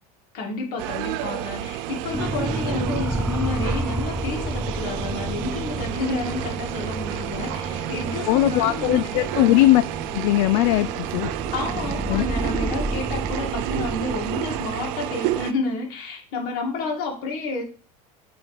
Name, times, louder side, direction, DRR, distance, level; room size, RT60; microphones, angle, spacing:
voice 1, 0.3-9.2 11.5-17.6, left 3 dB, 55° left, 1 dB, 2.1 m, -30 dB
sound 1, 0.8-15.5, right 14 dB, 65° right, 0.5 m, -30 dB
sound 2, 2.1-14.7, right 1 dB, 5° right, 0.4 m, -31 dB
voice 2, 8.3-9.8 10.1-11.3 12.1-12.2, left 16 dB, 70° left, 13 dB, 0.4 m, -19 dB
7.7 x 3.1 x 4.8 m, 0.38 s
supercardioid pair, 120°, 19 cm